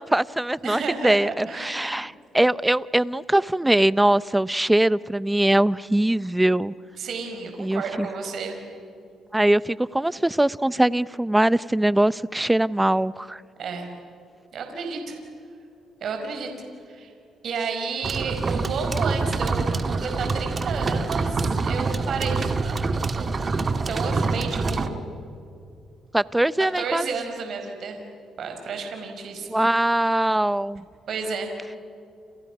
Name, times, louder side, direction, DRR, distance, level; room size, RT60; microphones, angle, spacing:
voice 1, 0.0-6.7 7.6-8.1 9.3-13.4 26.1-27.1 29.5-30.8, right 1 dB, 10° right, 18 dB, 0.7 m, -22 dB
voice 2, 0.6-2.1 7.0-8.6 13.6-13.9 14.5-15.2 16.0-16.5 16.9-17.1 17.4-22.8 23.9-25.1 26.8-28.0 28.4-29.6 31.1-31.5, right 4 dB, 65° right, 4 dB, 5.0 m, -31 dB
sound 1, 18.0-24.9, right 4 dB, 35° right, 2.0 m, -26 dB
29.5 x 29.5 x 6.0 m, 2.5 s
cardioid pair, 90°, 0 cm